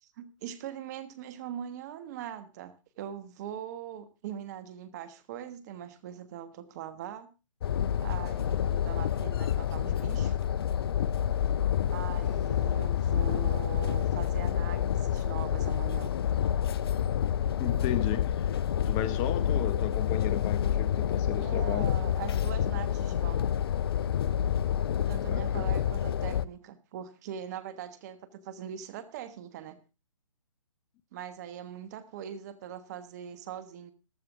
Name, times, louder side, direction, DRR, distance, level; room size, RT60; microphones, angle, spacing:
voice 1, 0.0-7.3 8.0-10.4 11.9-16.1 21.3-23.4 25.1-29.8 31.1-33.9, right 10 dB, 30° right, 1.3 m, -41 dB
sound 1, 7.6-26.4, left 9 dB, 45° left, 0.6 m, -28 dB
voice 2, 17.6-18.5 18.9-21.9 25.3-25.8, left 12 dB, 20° left, 0.9 m, -34 dB
14.5 x 12.5 x 3.6 m
figure-of-eight pair, 140°, 17 cm